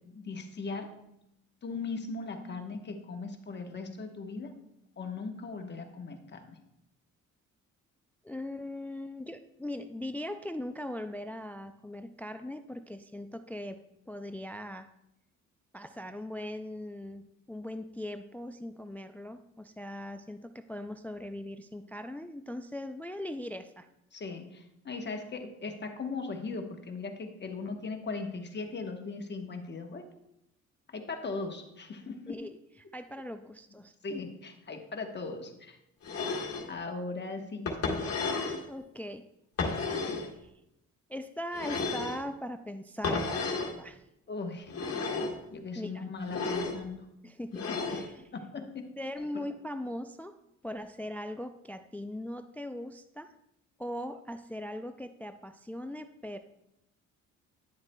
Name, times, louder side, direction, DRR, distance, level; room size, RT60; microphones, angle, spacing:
voice 1, 0.1-0.9 1.6-4.6 5.0-6.6 24.1-30.0 30.9-32.4 34.0-35.8 36.7-38.1 44.3-44.7 45.5-47.0 47.5-48.0 48.3-48.9 49.2-49.5, left 4 dB, 35° left, 4 dB, 1.1 m, -39 dB
voice 2, 8.2-14.9 15.7-23.9 32.3-32.6 32.9-33.9 38.7-39.3 40.3-40.5 41.1-44.0 45.8-46.0 47.2-47.5 47.9-48.2 49.0-50.4 50.6-53.3 53.8-56.4, left 1 dB, 5° left, 9 dB, 0.3 m, -40 dB
sound 1, 36.0-36.7 37.7-38.6 39.6-40.3 41.5-42.2 43.0-43.7 44.7-45.4 46.2-46.8 47.5-48.1, left 4 dB, 50° left, 1.4 m, -32 dB
10.5 x 7.1 x 2.2 m, 0.84 s
cardioid pair, 90°, 30 cm